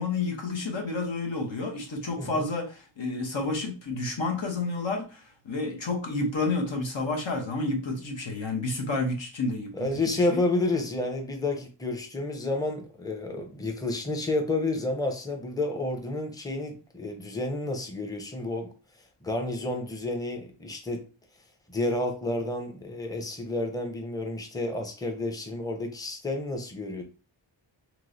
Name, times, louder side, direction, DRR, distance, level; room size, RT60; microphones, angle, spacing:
voice 1, 0.0-9.9 10.2-10.4, left 3 dB, 70° left, 1.0 m, -30 dB
voice 2, 9.7-18.7 19.2-21.0 21.7-27.0, left 2 dB, 10° left, 0.7 m, -30 dB
3.0 x 3.0 x 2.6 m
wide cardioid pair, 45°, 47 cm